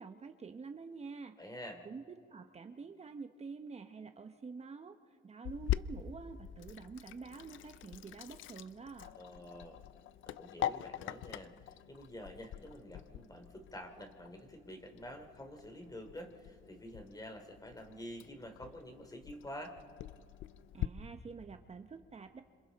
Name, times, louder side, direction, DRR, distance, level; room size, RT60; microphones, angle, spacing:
voice 1, 0.0-1.4 1.8-2.0 2.3-9.1 20.7-22.4, right 4 dB, 35° right, 7 dB, 0.9 m, -48 dB
voice 2, 1.4-1.9 9.1-9.8 10.2-19.8, equal, 20° left, 4 dB, 3.1 m, -48 dB
Sink (filling or washing), 5.4-20.9, left 12 dB, 80° left, 0.6 m, -44 dB
27.0 x 26.5 x 4.1 m, 2.6 s
cardioid pair, 90°, 20 cm